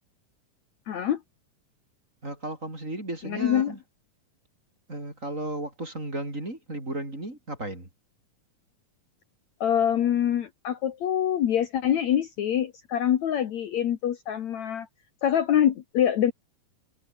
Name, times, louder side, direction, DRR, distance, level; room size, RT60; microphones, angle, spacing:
voice 1, 0.9-1.2 3.2-3.8 9.6-14.9 15.2-16.3, left 10 dB, 60° left, 2.5 m, -25 dB
voice 2, 2.2-3.8 4.9-7.9, right 1 dB, 20° right, 6.2 m, -34 dB
omnidirectional pair, 3.9 m